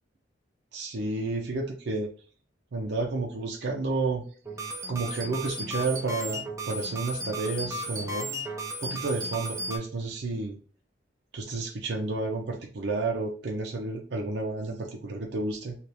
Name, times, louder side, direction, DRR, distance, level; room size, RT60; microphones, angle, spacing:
voice 1, 0.7-2.1 2.7-4.2 4.9-8.3 8.8-10.6 11.3-15.8, right 3 dB, 60° right, 0 dB, 0.6 m, -31 dB
sound 1, 4.4-9.8, right 1 dB, 15° right, 0.5 m, -35 dB
3.3 x 2.4 x 2.7 m, 0.41 s
head